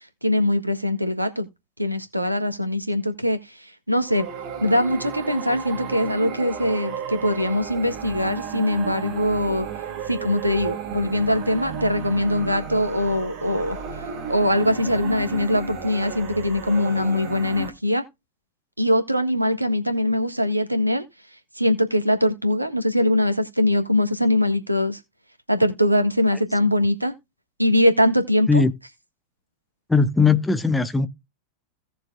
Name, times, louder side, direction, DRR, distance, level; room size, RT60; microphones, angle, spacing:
voice 1, 0.2-1.5 1.8-4.3 4.6-9.7 10.1-18.0 18.8-21.0 21.5-25.0 25.5-27.1 27.6-28.6, left 1 dB, 85° right, 1.6 m, -22 dB
sound 1, 4.0-17.7, right 6 dB, 40° right, 2.3 m, -33 dB
voice 2, 29.9-31.1, left 4 dB, 5° left, 1.0 m, -18 dB
17.0 x 6.8 x 2.4 m
figure-of-eight pair, 90°, 0 cm